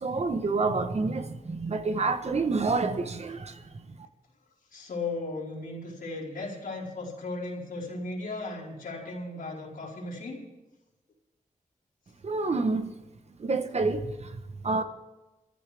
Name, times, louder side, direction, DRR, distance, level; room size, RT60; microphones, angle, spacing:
voice 1, 0.0-3.9 12.2-12.9 13.4-14.8, right 3 dB, 50° right, 1.1 m, -28 dB
voice 2, 4.7-10.4, left 3 dB, 85° left, 4.5 m, -36 dB
22.5 x 14.5 x 3.5 m
wide cardioid pair, 120°, 14 cm